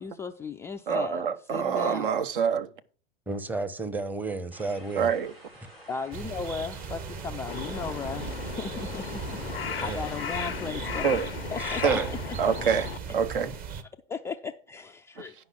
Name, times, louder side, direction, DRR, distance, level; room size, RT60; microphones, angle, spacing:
voice 1, 0.0-1.2 1.5-2.1 5.9-8.3 8.6-11.2 11.5-12.0 12.2-12.5 13.4-13.5 14.1-15.3, left 5 dB, 10° left, 0.3 m, -36 dB
voice 2, 0.9-2.7 5.0-5.3 11.0-11.3 11.8-12.1 12.4-13.6 15.2-15.3, right 7 dB, 60° right, 0.9 m, -26 dB
voice 3, 3.3-5.1 9.6-10.1 11.6-12.1, right 2 dB, 5° right, 0.8 m, -33 dB
sound 1, 4.5-9.7, right 1 dB, 85° right, 5.2 m, -51 dB
sound 2, 6.1-13.8, right 6 dB, 30° right, 1.1 m, -37 dB
Crow, 7.5-13.0, left 7 dB, 80° left, 0.6 m, -36 dB
9.8 x 5.4 x 5.7 m
figure-of-eight pair, 90°, 29 cm